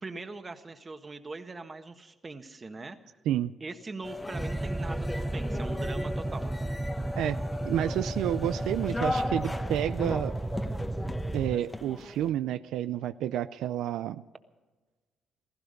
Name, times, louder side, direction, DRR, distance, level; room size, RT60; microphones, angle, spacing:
voice 1, 0.0-3.0 3.6-6.5, right 3 dB, 30° right, 7 dB, 1.5 m, -41 dB
sound 1, 4.0-12.3, left 2 dB, 15° left, 1.0 m, -37 dB
sound 2, 4.3-11.6, right 2 dB, 15° right, 0.5 m, -33 dB
sound 3, 5.4-11.5, right 7 dB, 70° right, 3.5 m, -59 dB
voice 2, 7.6-10.4 11.3-14.2, right 11 dB, 85° right, 12 dB, 0.4 m, -30 dB
16.5 x 15.0 x 5.3 m, 1.2 s
cardioid pair, 90°, 0 cm